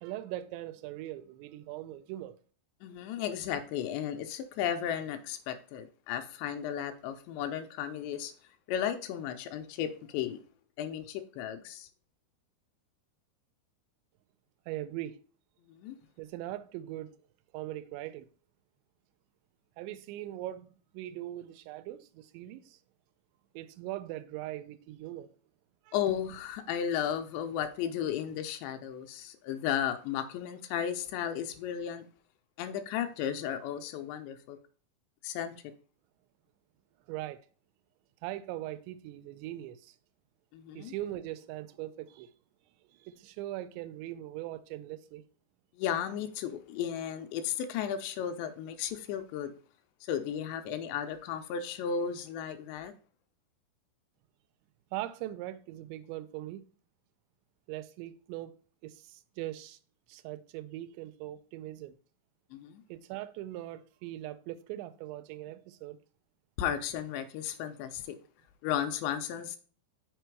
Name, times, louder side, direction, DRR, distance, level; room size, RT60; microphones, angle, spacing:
voice 1, 0.0-2.4 14.7-15.2 16.2-17.1 17.5-18.3 19.8-22.8 23.5-25.3 25.9-26.0 37.1-37.4 38.2-40.0 40.7-42.3 42.9-45.2 54.9-56.6 57.7-58.6 58.8-59.8 60.1-62.0 62.9-66.0, right 14 dB, 85° right, 2.8 m, -40 dB
voice 2, 2.8-8.3 8.7-10.4 10.8-11.9 15.7-16.0 25.9-32.1 32.6-34.6 35.2-35.5 40.5-40.9 45.8-49.5 50.0-52.9 62.5-62.8 66.6-68.2 68.6-69.6, left 9 dB, 85° left, 2.8 m, -34 dB
6.6 x 4.5 x 4.6 m
omnidirectional pair, 5.0 m